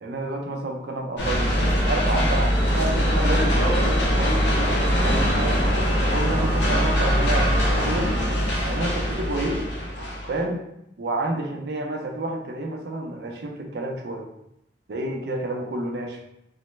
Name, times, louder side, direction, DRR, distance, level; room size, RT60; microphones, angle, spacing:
voice 1, 0.0-5.6 6.0-8.2 8.7-9.7 10.3-10.6 11.0-14.3 14.9-16.2, right 2 dB, 60° right, 3 dB, 0.5 m, -30 dB
sound 1, 1.2-10.4, equal, 75° left, 0.7 m, -22 dB
3.0 x 2.1 x 3.1 m, 0.82 s
head